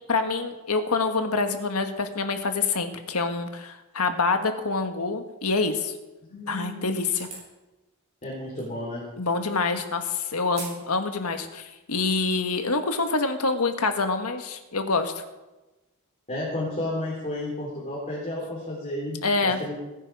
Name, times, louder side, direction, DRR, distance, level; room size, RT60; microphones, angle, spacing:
voice 1, 0.1-5.9 6.5-7.3 9.2-15.1 19.2-19.6, left 3 dB, 90° left, 6 dB, 1.6 m, -26 dB
voice 2, 6.3-7.1 8.2-9.1 16.3-19.8, left 1 dB, 30° left, -6 dB, 3.8 m, -32 dB
sound 1, 7.1-7.5 8.6-8.7 10.5-10.8 11.2-11.3 12.0-12.4, right 3 dB, 30° right, 6.4 m, -40 dB
20.0 x 10.0 x 4.8 m, 1.1 s
head